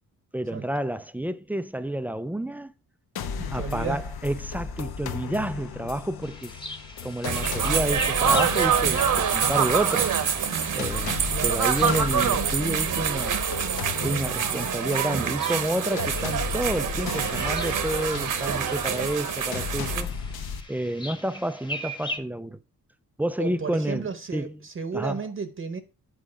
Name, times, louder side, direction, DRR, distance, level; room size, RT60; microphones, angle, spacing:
voice 1, 0.3-2.7 3.5-6.6 7.0-10.1 10.8-13.4 14.0-20.1 20.7-22.6 23.2-24.6 24.9-25.2, right 1 dB, 5° right, 0.3 m, -30 dB
sound 1, 3.2-20.6, left 6 dB, 85° left, 1.0 m, -35 dB
voice 2, 3.4-4.0 11.3-11.6 23.4-25.8, right 5 dB, 35° right, 0.8 m, -33 dB
sound 2, 6.2-22.2, left 1 dB, 15° left, 1.1 m, -41 dB
sound 3, 7.2-20.0, right 8 dB, 60° right, 1.0 m, -26 dB
8.7 x 5.1 x 4.9 m
wide cardioid pair, 145°, 36 cm